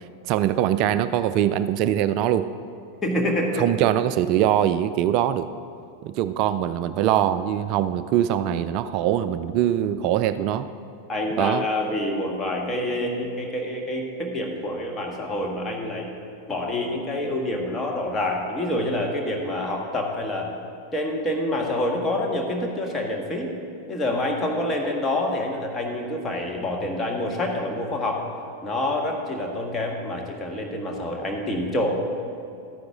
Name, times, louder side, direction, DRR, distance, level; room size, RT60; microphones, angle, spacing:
voice 1, 0.2-2.5 3.6-5.5 6.0-10.7 11.4-11.6, right 11 dB, 40° right, 13 dB, 0.3 m, -22 dB
voice 2, 3.0-3.7 11.1-16.1 16.5-20.5 20.9-23.5 23.9-28.3 28.6-31.9, left 1 dB, 15° left, 0 dB, 1.5 m, -27 dB
12.5 x 9.4 x 3.7 m, 2.6 s
figure-of-eight pair, 90°, 0 cm